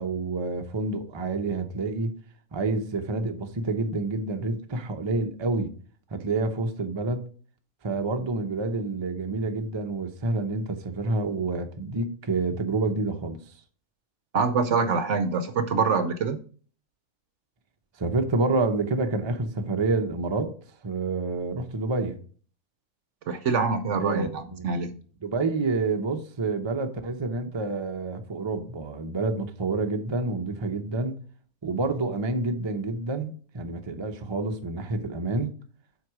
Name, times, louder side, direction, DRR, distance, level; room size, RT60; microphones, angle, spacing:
voice 1, 0.0-2.1 2.5-5.7 6.1-7.2 7.8-13.4 18.0-20.5 20.8-22.2 23.9-24.3 24.6-24.8 25.2-31.2 31.6-35.5, right 3 dB, 25° right, 5 dB, 0.6 m, -28 dB
voice 2, 14.3-16.4 23.3-25.0, right 5 dB, 60° right, 9 dB, 0.9 m, -25 dB
7.6 x 4.8 x 4.8 m, 0.43 s
omnidirectional pair, 1.6 m